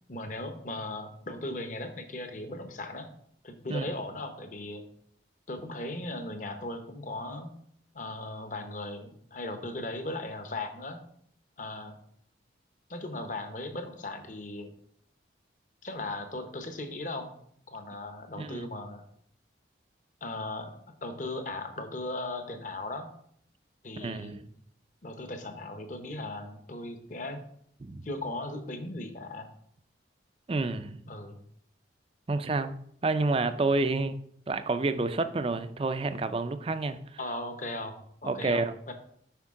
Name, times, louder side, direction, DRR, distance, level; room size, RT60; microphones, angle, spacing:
voice 1, 0.1-3.1 3.4-4.8 5.5-7.5 7.9-11.0 11.6-12.0 12.9-14.7 15.8-17.3 17.7-19.0 20.2-20.8 21.0-23.1 23.8-24.5 25.0-27.4 28.0-29.5 31.1-31.4 37.2-38.9, left 2 dB, 45° left, 6 dB, 0.9 m, -37 dB
voice 2, 18.4-18.7 24.0-24.4 27.8-28.1 30.5-31.0 32.3-32.7 33.0-34.2 34.5-37.0 38.2-38.9, right 3 dB, 30° right, 10 dB, 0.4 m, -29 dB
8.2 x 5.3 x 3.7 m, 0.66 s
head